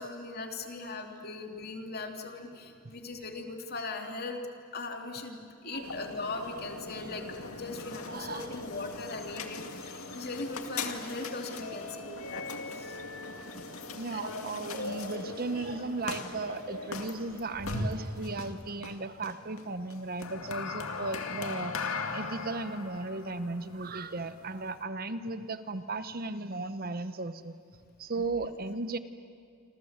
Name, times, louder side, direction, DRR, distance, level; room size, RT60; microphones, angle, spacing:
voice 1, 0.0-4.4 4.7-7.3 7.6-13.0 14.1-14.2, left 3 dB, 50° left, 4 dB, 2.8 m, -39 dB
sound 1, 5.8-24.8, left 3 dB, 85° left, 2.2 m, -39 dB
voice 2, 8.1-8.5 13.5-13.6 13.9-21.7 22.1-27.5 28.0-29.0, right 3 dB, 45° right, 12 dB, 1.0 m, -36 dB
27.0 x 27.0 x 8.1 m, 2.3 s
head